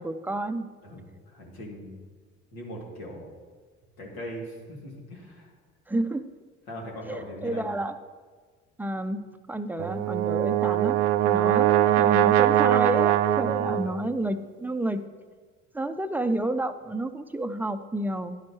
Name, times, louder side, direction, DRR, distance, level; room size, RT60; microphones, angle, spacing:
voice 1, 0.0-0.7 5.9-6.3 7.1-8.0 8.8-15.0 15.7-18.4, right 1 dB, 5° right, 9 dB, 0.6 m, -30 dB
voice 2, 0.8-2.0 2.5-3.3 4.0-5.5 6.7-7.7 13.5-13.8, equal, 70° left, -2 dB, 2.9 m, -40 dB
Brass instrument, 9.8-14.1, right 12 dB, 80° right, 0.5 m, -22 dB
11.0 x 10.5 x 3.2 m, 1.5 s
hypercardioid pair, 60°, 37 cm